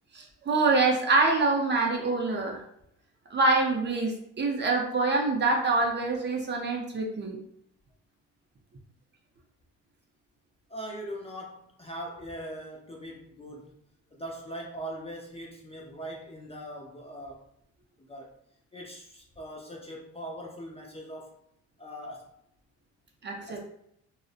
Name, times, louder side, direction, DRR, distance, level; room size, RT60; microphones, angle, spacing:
voice 1, 0.1-2.6 3.3-7.4 23.2-23.7, right 3 dB, 35° right, 1 dB, 0.5 m, -25 dB
voice 2, 10.7-13.8 14.1-17.4 18.1-18.3 18.7-21.4 21.8-22.3 23.5-23.7, equal, 20° left, -1 dB, 0.4 m, -41 dB
2.5 x 2.1 x 2.4 m, 0.74 s
supercardioid pair, 85°, 33 cm